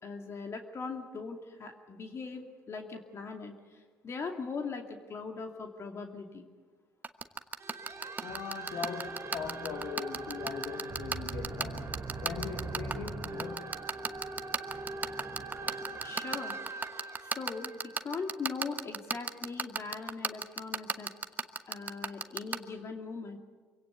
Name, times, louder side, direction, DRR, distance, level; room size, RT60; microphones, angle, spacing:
voice 1, 0.0-3.5 4.0-6.4 16.0-16.5 17.2-21.1 21.7-23.4, left 4 dB, 45° left, 2.5 m, -40 dB
sound 1, 7.0-22.6, right 4 dB, 25° right, 1.3 m, -32 dB
sound 2, 7.6-18.8, right 3 dB, 45° right, 3.4 m, -41 dB
voice 2, 8.2-11.9 12.2-13.8 15.6-16.0, left 7 dB, 65° left, 1.5 m, -40 dB
24.5 x 17.0 x 8.1 m
hypercardioid pair, 60°, 6 cm